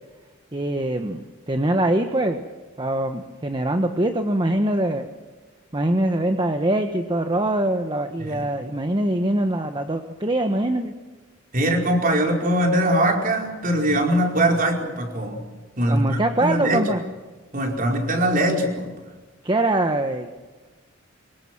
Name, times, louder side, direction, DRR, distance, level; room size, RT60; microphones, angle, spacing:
voice 1, 0.5-2.4 2.8-5.1 5.7-10.9 15.9-17.0 19.4-20.3, right 1 dB, 25° right, 6 dB, 1.2 m, -23 dB
voice 2, 11.5-15.4 15.8-16.9 17.5-18.9, right 1 dB, 45° right, 1 dB, 4.9 m, -22 dB
25.5 x 23.5 x 6.1 m, 1.3 s
head